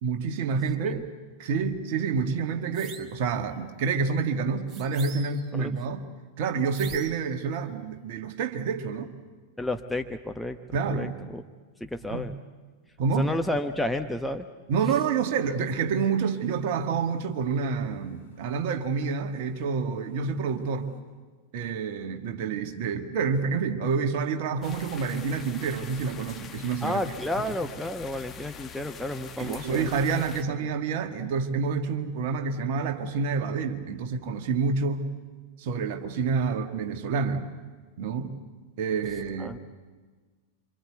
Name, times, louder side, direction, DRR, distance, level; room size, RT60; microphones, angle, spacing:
voice 1, 0.0-1.0 1.4-6.0 6.4-9.1 10.7-11.1 12.1-12.3 13.0-13.3 14.7-20.9 21.5-27.0 27.4-27.5 29.4-35.1 35.6-37.5 38.0-38.3 38.8-39.6, right 5 dB, 50° right, 6 dB, 1.8 m, -28 dB
sound 1, 2.7-3.2 4.7-5.5 6.7-7.3, right 6 dB, 30° right, 1.8 m, -44 dB
voice 2, 9.6-10.6 10.9-11.4 11.8-12.4 13.2-14.5 26.8-29.9 30.6-30.7 39.4-39.6, left 1 dB, 5° left, 5 dB, 1.0 m, -31 dB
sound 2, 15.1-21.0, left 3 dB, 70° left, 4.5 m, -54 dB
sound 3, 24.6-30.4, left 7 dB, 25° left, 1.5 m, -44 dB
26.5 x 25.0 x 8.1 m, 1.4 s
figure-of-eight pair, 90°, 0 cm